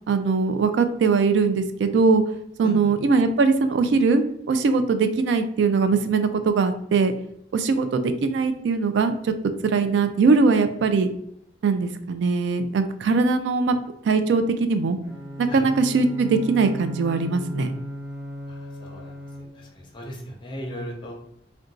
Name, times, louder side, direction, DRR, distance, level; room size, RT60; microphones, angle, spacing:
voice 1, 0.1-2.2 2.6-4.2 4.5-7.1 7.5-9.3 9.6-11.1 11.6-13.8 14.0-15.0 15.4-17.7, right 4 dB, 75° right, 9 dB, 0.3 m, -21 dB
voice 2, 2.6-2.9 15.5-15.6 18.5-19.1 19.5-21.1, equal, 25° left, 0 dB, 0.7 m, -37 dB
Bowed string instrument, 15.0-19.8, equal, 20° right, 0.7 m, -36 dB
2.5 x 2.2 x 3.9 m, 0.71 s
head